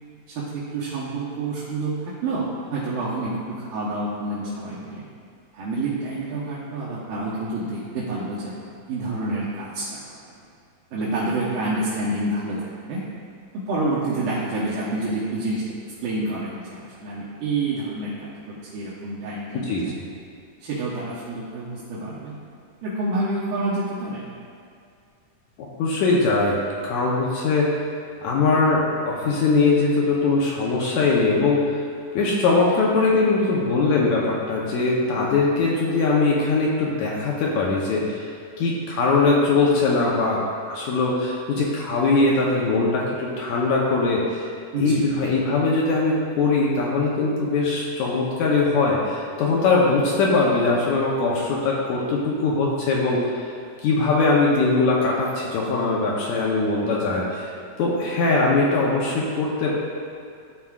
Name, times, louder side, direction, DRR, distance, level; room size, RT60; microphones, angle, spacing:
voice 1, 0.3-5.1 5.5-8.5 8.9-10.4 10.9-13.0 13.5-15.7 16.0-19.9 20.6-22.3 22.8-24.3 44.7-45.1, right 2 dB, 80° right, -9 dB, 2.5 m, -28 dB
voice 2, 19.5-19.9 25.6-26.6 26.8-27.8 28.2-31.7 32.1-38.3 38.6-40.4 40.7-44.4 44.8-53.2 53.8-57.5 57.8-59.7, left 3 dB, 75° left, -4 dB, 2.0 m, -21 dB
13.0 x 4.8 x 2.4 m, 2.4 s
omnidirectional pair, 3.7 m